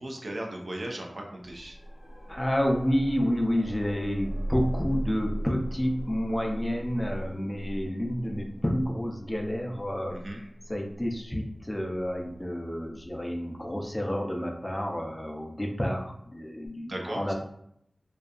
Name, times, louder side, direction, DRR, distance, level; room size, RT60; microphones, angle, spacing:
voice 1, 0.0-1.8 10.1-10.4 16.9-17.3, right 1 dB, 65° right, 1 dB, 0.5 m, -37 dB
sound 1, 1.4-14.3 16.7-16.8, equal, 70° left, 0.7 m, -39 dB
voice 2, 2.3-17.3, equal, 20° left, 1 dB, 0.4 m, -30 dB
2.6 x 2.3 x 2.3 m, 0.73 s
wide cardioid pair, 55°, 0 cm